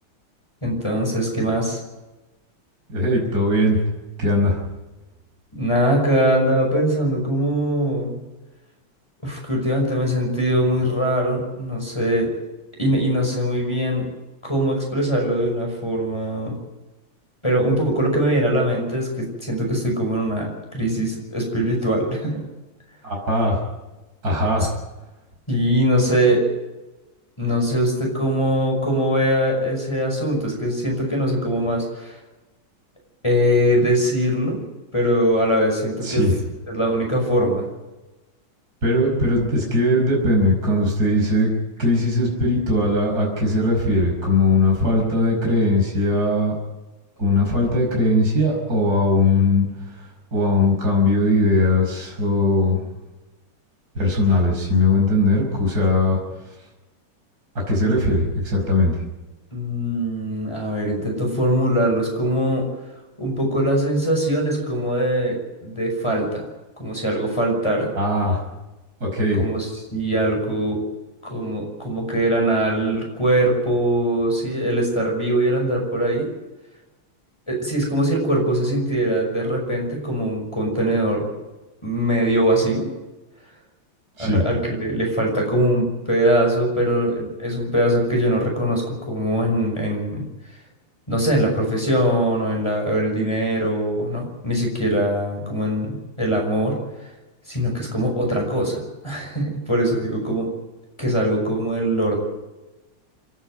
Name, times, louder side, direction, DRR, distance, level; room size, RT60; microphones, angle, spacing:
voice 1, 0.6-1.8 5.5-8.2 9.2-12.3 12.8-14.1 14.4-16.5 17.4-22.4 25.5-26.5 27.4-32.2 33.2-34.6 34.9-36.3 36.7-37.7 59.5-62.7 63.2-66.4 66.8-67.9 69.4-70.8 71.2-76.3 77.5-81.3 81.8-82.9 84.2-90.2 91.1-96.8 97.5-100.5 101.0-102.2, right 1 dB, 15° left, 0 dB, 5.6 m, -22 dB
voice 2, 2.9-3.8 4.2-4.6 23.0-23.6 24.2-24.7 36.0-36.3 38.8-41.5 41.8-46.6 47.2-49.7 50.0-52.8 53.9-56.2 57.7-59.0 68.0-68.4 69.0-69.4 84.2-84.4, left 1 dB, 45° right, -1 dB, 5.9 m, -19 dB
28.0 x 11.5 x 9.1 m, 1.1 s
omnidirectional pair, 2.3 m